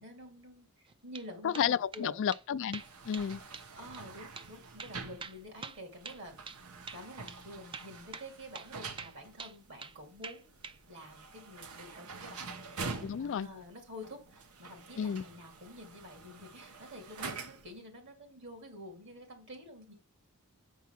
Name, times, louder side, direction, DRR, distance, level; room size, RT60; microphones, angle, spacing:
voice 1, 0.0-2.2 3.8-6.4 6.9-10.5 10.9-19.9, left 1 dB, 55° right, 2.7 m, -49 dB
sound 1, 0.9-1.3 1.5-2.1 2.3-2.4 2.7-3.3 3.5-3.7 3.9-4.0 4.4-4.5 4.8-6.6 6.9-7.0 7.3-7.4 7.7-8.3 8.5-8.7 9.0-10.0 10.2-10.8, right 5 dB, 25° right, 0.5 m, -45 dB
voice 2, 1.4-3.4 13.0-13.5 15.0-15.2, left 8 dB, 60° left, 0.3 m, -32 dB
sound 2, 2.7-17.8, right 4 dB, 85° right, 1.1 m, -46 dB
8.1 x 4.6 x 6.0 m
head